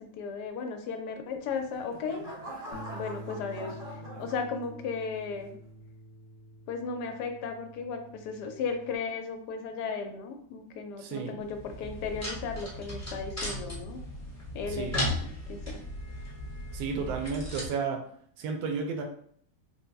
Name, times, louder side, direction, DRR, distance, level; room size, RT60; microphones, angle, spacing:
voice 1, 0.0-2.2 2.9-3.8 4.2-5.5 6.7-14.0 14.5-15.8, left 5 dB, 80° left, 5 dB, 1.2 m, -35 dB
sound 1, 1.4-5.0 5.5-5.9, equal, 35° right, 0.6 m, -44 dB
Bass guitar, 2.7-9.0, right 1 dB, 60° left, 0.6 m, -47 dB
voice 2, 11.0-11.4 14.7-15.1 16.7-18.0 18.4-19.0, right 5 dB, 75° right, 4 dB, 1.1 m, -32 dB
sound 2, 11.4-17.7, left 1 dB, 15° left, 0.5 m, -36 dB
3.8 x 2.0 x 3.3 m, 0.63 s
omnidirectional pair, 1.8 m